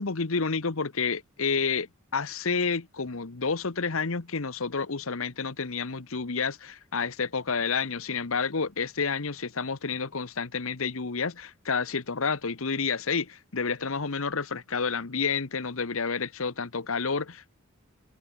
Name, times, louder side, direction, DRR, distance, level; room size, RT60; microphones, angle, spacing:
voice 1, 0.0-1.9 2.1-17.5, left 5 dB, 70° left, 1.1 m, -30 dB
head